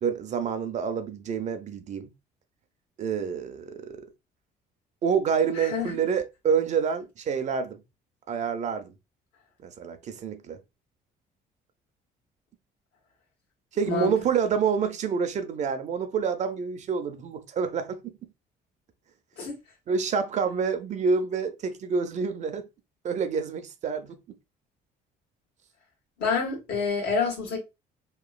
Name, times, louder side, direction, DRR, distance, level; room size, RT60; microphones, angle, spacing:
voice 1, 0.0-2.1 3.0-4.0 5.0-7.8 8.3-8.9 9.6-10.6 13.7-18.1 19.9-22.7 23.0-24.2, right 6 dB, 45° right, 0.5 m, -28 dB
voice 2, 5.5-5.9 13.8-14.1 19.4-19.5 26.2-27.6, left 5 dB, 75° left, 1.3 m, -27 dB
2.9 x 2.2 x 2.3 m
cardioid pair, 110°, 17 cm